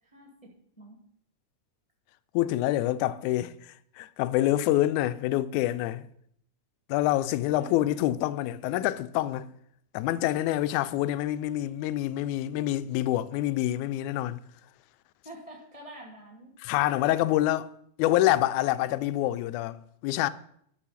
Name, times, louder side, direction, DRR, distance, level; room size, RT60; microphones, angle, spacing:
voice 1, 0.1-1.0 7.3-7.9 15.2-16.5, right 1 dB, 20° left, 1.1 m, -47 dB
voice 2, 2.3-3.5 4.0-6.1 6.9-9.5 9.9-14.4 16.6-17.7 18.0-20.3, left 14 dB, 80° left, 1.9 m, -26 dB
12.0 x 6.6 x 5.8 m
omnidirectional pair, 3.6 m